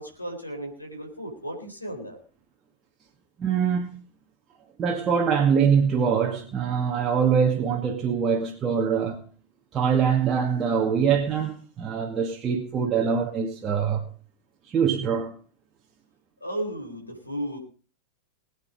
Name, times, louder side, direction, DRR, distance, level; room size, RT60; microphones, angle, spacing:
voice 1, 0.0-2.2 16.4-17.6, right 1 dB, 85° left, 4.1 m, -34 dB
voice 2, 3.4-3.9 4.8-9.2 9.7-14.0 14.7-15.4, right 7 dB, 25° right, 2.1 m, -23 dB
21.5 x 9.0 x 5.2 m
figure-of-eight pair, 90°, 0 cm